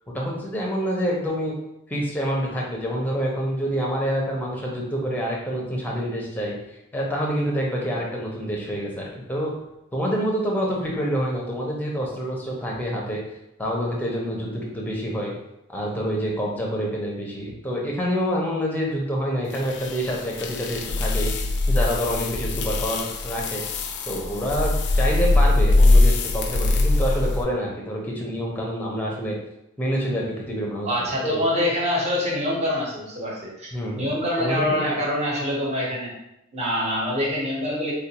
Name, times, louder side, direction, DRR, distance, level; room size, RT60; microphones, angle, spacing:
voice 1, 0.1-1.6 1.9-6.5 6.9-9.5 9.9-13.2 13.6-15.3 15.7-21.3 21.7-23.6 24.1-29.4 29.8-31.5 33.7-34.1 34.4-35.0, equal, 10° left, -3 dB, 0.6 m, -27 dB
sound 1, 19.5-27.4, left 2 dB, 55° left, 0.4 m, -21 dB
voice 2, 30.9-36.1 36.5-37.9, left 1 dB, 30° right, -3 dB, 0.9 m, -25 dB
3.6 x 2.4 x 2.9 m, 0.85 s
head